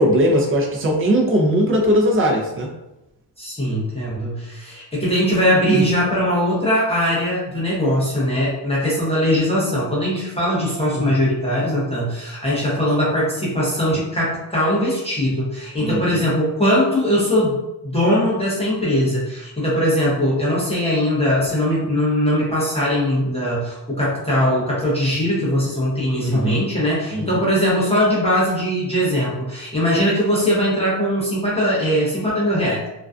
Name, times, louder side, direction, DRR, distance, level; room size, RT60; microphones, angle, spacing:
voice 1, 0.0-2.7 5.7-5.9 10.9-11.1 15.8-16.2 26.2-26.7 27.1-27.4, equal, 30° right, 0 dB, 0.5 m, -19 dB
voice 2, 3.4-17.6 17.8-32.9, equal, 15° left, -8 dB, 0.6 m, -20 dB
2.4 x 2.2 x 2.3 m, 0.95 s
cardioid pair, 120°, 44 cm